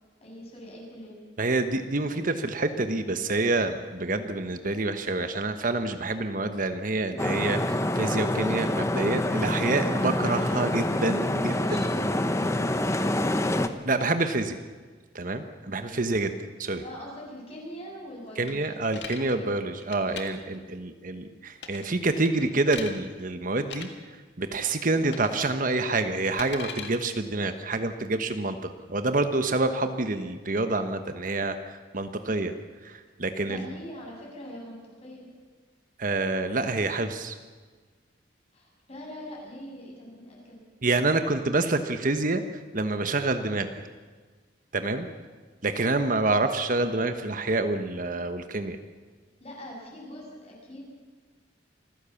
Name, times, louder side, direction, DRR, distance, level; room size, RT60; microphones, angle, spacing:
voice 1, 0.2-1.2 11.3-13.7 15.8-16.1 16.8-18.7 19.2-19.5 33.4-35.3 38.5-40.6 49.4-50.8, equal, 35° left, -2 dB, 7.2 m, -43 dB
voice 2, 1.4-11.8 13.8-14.6 15.1-16.3 16.6-16.8 18.4-32.5 32.8-33.7 36.0-37.4 40.8-42.4 42.7-43.7 44.7-45.1 45.6-48.8, right 2 dB, 45° right, 8 dB, 1.2 m, -27 dB
sound 1, 7.2-13.7, left 1 dB, 15° left, 1.0 m, -26 dB
sound 2, 18.5-19.2 19.8-20.2 21.6-21.9 22.2-22.9 23.6-23.9 25.1-25.4 25.7-26.9, left 6 dB, 65° left, 2.1 m, -39 dB
26.0 x 15.5 x 7.1 m, 1.4 s
head